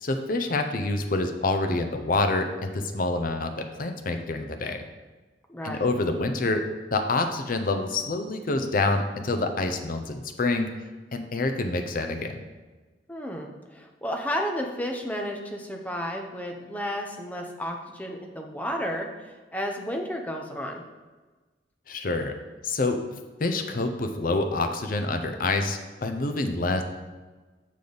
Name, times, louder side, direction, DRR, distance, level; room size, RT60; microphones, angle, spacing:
voice 1, 0.0-4.8 5.6-6.6 6.9-10.7 11.1-12.3 21.9-22.3 22.6-23.0 23.4-26.8, left 2 dB, 50° left, 6 dB, 0.6 m, -27 dB
voice 2, 5.5-5.9 13.1-20.8, equal, 10° left, 2 dB, 0.6 m, -32 dB
6.9 x 5.1 x 3.9 m, 1.3 s
head